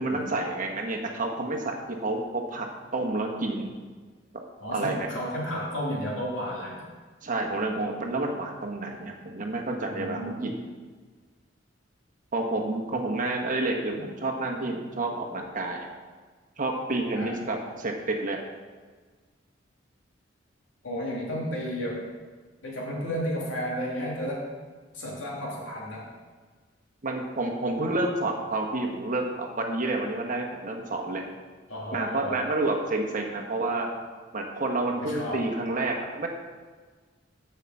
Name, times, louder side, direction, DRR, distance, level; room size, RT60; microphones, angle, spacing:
voice 1, 0.0-2.7 2.9-3.7 4.7-5.1 7.2-10.5 12.3-15.9 16.6-18.4 27.0-31.2 31.9-33.9 34.3-36.3, right 2 dB, 45° right, 1 dB, 1.3 m, -29 dB
voice 2, 4.6-6.9 9.9-10.5 13.9-14.0 17.2-17.4 20.8-22.1 22.6-24.5 24.9-26.1 31.7-32.5 35.0-35.5, equal, 85° left, -3 dB, 2.7 m, -32 dB
7.5 x 5.7 x 7.7 m, 1.4 s
head